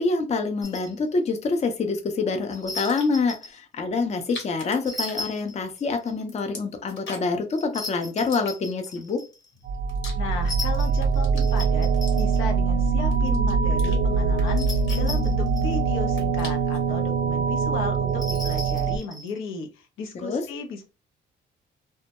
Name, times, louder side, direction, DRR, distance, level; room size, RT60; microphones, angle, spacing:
voice 1, 0.0-9.2 20.2-20.4, left 4 dB, 35° left, 6 dB, 0.5 m, -26 dB
sound 1, 0.6-0.9 2.5-3.6 4.8-6.1 7.5-9.5 10.4-12.4 14.5-15.8 18.1-19.4, left 2 dB, 20° left, 0.9 m, -36 dB
sound 2, 2.7-3.3 4.1-5.8 6.1-7.5 8.2-9.0 9.5-10.6 10.9-12.6 13.1-14.0 14.3-15.7 16.0-16.9, left 3 dB, 70° left, 1.1 m, -43 dB
sound 3, 9.7-19.0, right 5 dB, 45° right, 0.4 m, -23 dB
voice 2, 10.1-11.9 12.2-20.8, left 3 dB, 85° left, 3 dB, 0.6 m, -35 dB
2.2 x 2.0 x 2.8 m, 0.29 s
cardioid pair, 90°, 20 cm